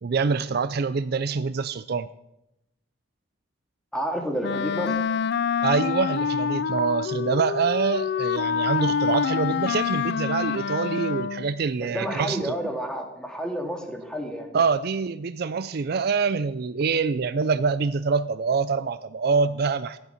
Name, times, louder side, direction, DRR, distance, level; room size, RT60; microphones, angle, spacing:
voice 1, 0.0-2.1 5.6-12.5 14.5-20.0, right 5 dB, 50° right, 13 dB, 0.4 m, -25 dB
voice 2, 3.9-4.9 11.8-14.5, equal, 5° left, 3 dB, 2.0 m, -30 dB
Wind instrument woodwind instrument, 4.4-11.6, left 7 dB, 55° left, 0.4 m, -26 dB
14.0 x 11.0 x 5.8 m, 0.88 s
head